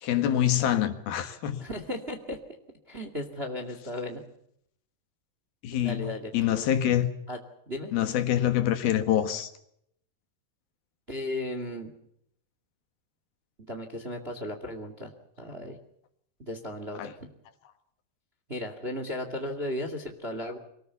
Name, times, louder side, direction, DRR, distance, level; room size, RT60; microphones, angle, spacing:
voice 1, 0.0-1.6 5.6-7.1 7.9-9.5 17.0-17.1, left 11 dB, 70° left, 3.3 m, -26 dB
voice 2, 1.6-2.4 2.9-4.2 5.8-6.7 7.3-7.4 7.7-7.9 11.1-11.9 13.7-15.1 15.4-15.8 16.4-17.3 18.5-20.6, left 1 dB, 20° right, 1.7 m, -35 dB
25.5 x 19.0 x 7.0 m
omnidirectional pair, 4.7 m